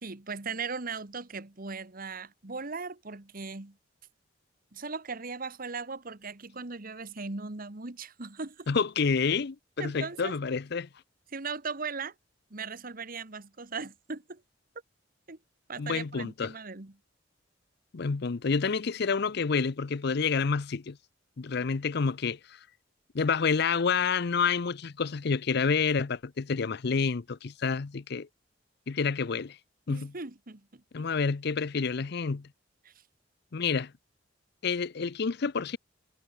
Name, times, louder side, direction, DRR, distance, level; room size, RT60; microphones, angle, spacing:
voice 1, 0.0-3.8 4.7-8.7 9.8-10.4 11.3-12.1 12.5-14.4 15.3-15.4 15.7-16.9 29.9-31.1 32.8-32.9, right 4 dB, 50° right, 1.6 m, -38 dB
voice 2, 8.7-10.9 15.8-16.5 17.9-21.0 21.4-22.6 23.1-28.3 28.9-29.6 29.9-30.1 30.9-32.5 33.5-33.9 34.6-35.8, left 5 dB, 60° left, 0.6 m, -28 dB
head